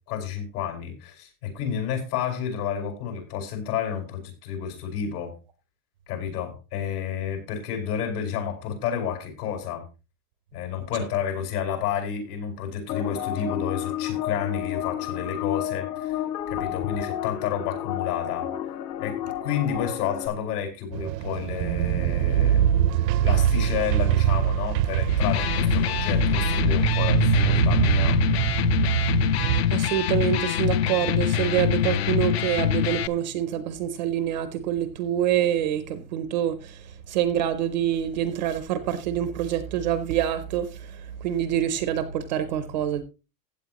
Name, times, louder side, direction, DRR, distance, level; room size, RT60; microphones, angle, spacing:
voice 1, 0.1-5.3 6.1-9.8 10.5-18.5 19.0-19.1 19.4-22.7 23.0-28.2, left 8 dB, 65° left, 4.8 m, -30 dB
sound 1, 12.9-20.3, left 12 dB, 85° left, 1.9 m, -31 dB
sound 2, 20.9-29.6, right 11 dB, 80° right, 0.6 m, -23 dB
Electric guitar, 25.1-33.1, left 10 dB, 45° left, 0.4 m, -24 dB
voice 2, 29.7-43.0, right 10 dB, 30° right, 0.5 m, -26 dB
15.5 x 8.8 x 2.9 m
supercardioid pair, 175°, 49 cm